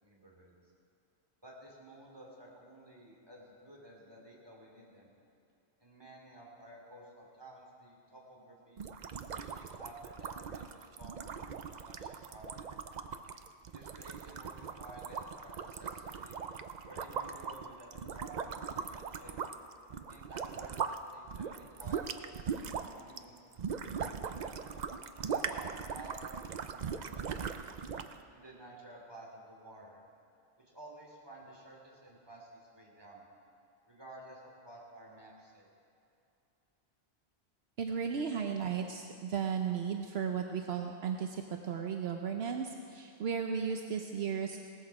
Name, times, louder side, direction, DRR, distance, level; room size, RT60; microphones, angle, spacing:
voice 1, 0.0-0.5 1.4-5.1 5.8-8.9 9.3-12.7 13.7-16.4 16.8-19.5 20.1-23.4 23.9-24.6 25.2-27.7 28.3-30.0 30.7-33.2 33.9-35.7, right 1 dB, 20° right, -3 dB, 2.9 m, -53 dB
sound 1, 8.8-21.0 21.3-28.2, right 6 dB, 50° right, 0.6 m, -40 dB
voice 2, 37.8-44.6, right 7 dB, 70° right, 4 dB, 1.0 m, -35 dB
18.0 x 14.0 x 4.8 m, 2.7 s
omnidirectional pair, 1.1 m